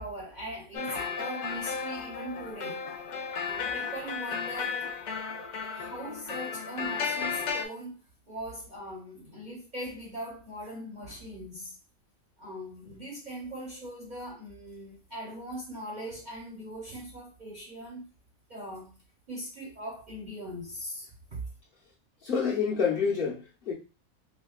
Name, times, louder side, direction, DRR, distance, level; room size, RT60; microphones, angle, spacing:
voice 1, 0.0-2.9 3.4-4.8 5.7-8.0 8.3-11.8 12.4-18.1 18.5-19.0 19.3-21.4, equal, 40° right, -3 dB, 0.8 m, -40 dB
sound 1, 0.7-7.7, left 6 dB, 80° left, 0.4 m, -34 dB
voice 2, 22.2-23.7, left 6 dB, 45° left, -5 dB, 1.0 m, -28 dB
4.4 x 2.2 x 2.3 m, 0.31 s
omnidirectional pair, 1.4 m